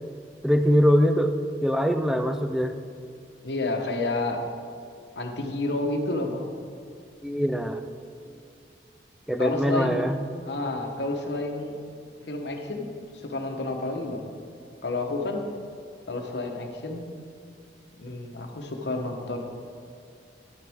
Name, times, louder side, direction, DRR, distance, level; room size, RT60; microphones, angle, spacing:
voice 1, 0.4-1.3 1.6-2.7 7.2-7.9 9.3-10.2, equal, ahead, 8 dB, 0.4 m, -22 dB
voice 2, 3.4-4.4 5.2-6.5 9.4-11.8 12.3-14.3 14.8-15.4 16.1-17.0 18.0-19.4, left 2 dB, 75° left, 3 dB, 1.0 m, -30 dB
10.5 x 9.0 x 3.6 m, 2.4 s
head